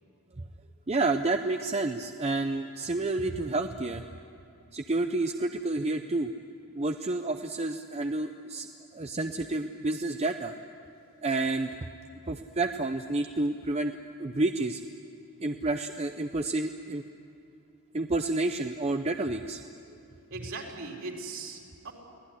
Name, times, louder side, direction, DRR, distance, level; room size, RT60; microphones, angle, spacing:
voice 1, 0.9-4.0 4.7-6.3 6.7-8.7 8.9-10.5 11.2-11.7 12.3-14.8 15.4-17.0 17.9-19.6, right 2 dB, 30° right, 6 dB, 0.6 m, -29 dB
voice 2, 20.3-21.9, right 3 dB, 60° right, -1 dB, 3.8 m, -39 dB
24.5 x 17.5 x 9.9 m, 2.7 s
head